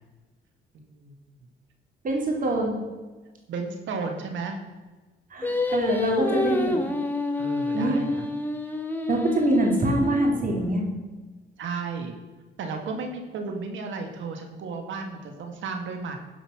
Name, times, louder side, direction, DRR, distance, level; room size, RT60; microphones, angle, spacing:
voice 1, 0.7-1.2 3.5-4.6 7.4-8.2 11.6-12.1 12.6-16.2, right 4 dB, 75° right, 4 dB, 1.9 m, -33 dB
voice 2, 2.0-2.7 5.3-6.7 7.7-8.0 9.1-10.8, right 1 dB, 45° right, 1 dB, 3.1 m, -24 dB
Singing, 5.4-10.7, left 2 dB, 10° left, 1.5 m, -28 dB
11.0 x 5.6 x 6.0 m, 1.3 s
cardioid pair, 90°, 20 cm